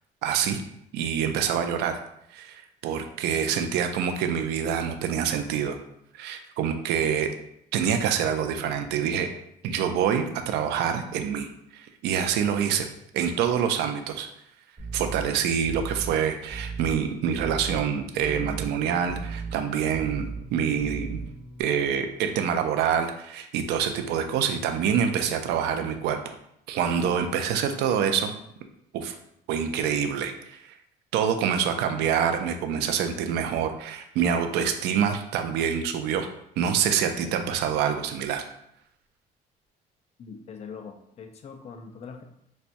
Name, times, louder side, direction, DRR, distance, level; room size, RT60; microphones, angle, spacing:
voice 1, 0.2-0.6 0.9-2.0 2.3-5.8 6.1-7.3 7.7-9.3 9.6-12.9 13.1-14.3 14.9-21.2 21.6-26.4 26.7-28.3 28.9-29.1 29.5-30.6 31.1-36.3 36.6-38.4, right 8 dB, 80° right, 6 dB, 0.4 m, -26 dB
sound 1, 14.8-21.6, right 4 dB, 25° right, 1.0 m, -37 dB
voice 2, 40.2-42.2, left 5 dB, 40° left, 6 dB, 0.4 m, -42 dB
4.1 x 2.2 x 2.5 m, 0.75 s
cardioid pair, 110°, 17 cm